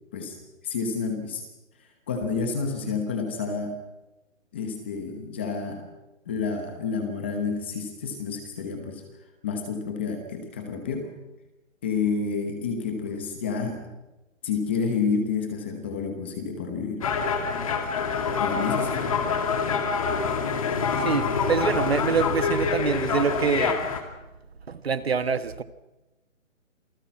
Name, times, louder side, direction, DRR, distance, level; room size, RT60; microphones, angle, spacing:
voice 1, 0.6-1.4 2.1-3.7 4.5-5.9 6.3-9.0 9.4-11.1 11.8-13.9 14.4-17.0 18.4-19.1, left 5 dB, 10° left, 1.1 m, -29 dB
sound 1, 17.0-24.0, left 5 dB, 25° left, 2.4 m, -26 dB
voice 2, 20.9-23.9 24.7-25.6, right 6 dB, 50° right, 1.5 m, -26 dB
28.5 x 19.0 x 6.0 m
hypercardioid pair, 170°, 39 cm